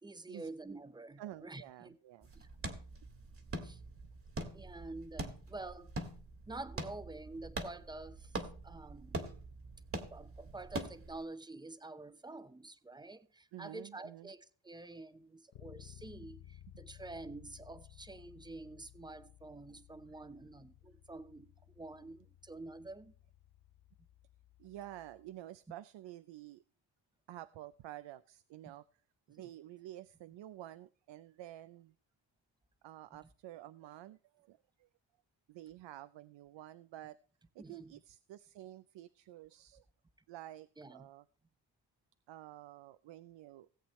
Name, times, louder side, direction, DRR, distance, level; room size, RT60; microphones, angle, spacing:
voice 1, 0.0-2.0 2.3-2.5 3.6-3.8 4.5-5.9 6.5-8.3 8.6-9.3 10.1-23.1 28.7-28.8 29.4-29.5 37.6-37.9 40.8-41.1, right 2 dB, 10° right, 0.7 m, -48 dB
voice 2, 1.2-2.3 13.5-14.3 24.6-26.6 27.3-28.8 29.3-31.9 32.8-34.9 35.5-37.2 37.5-39.8 40.3-41.2 42.3-43.7, right 14 dB, 70° right, 0.5 m, -50 dB
sound 1, 2.2-11.2, right 2 dB, 30° right, 1.6 m, -44 dB
Bass guitar, 15.5-25.3, left 12 dB, 60° left, 0.9 m, -58 dB
17.5 x 8.0 x 3.1 m
cardioid pair, 115°, 45 cm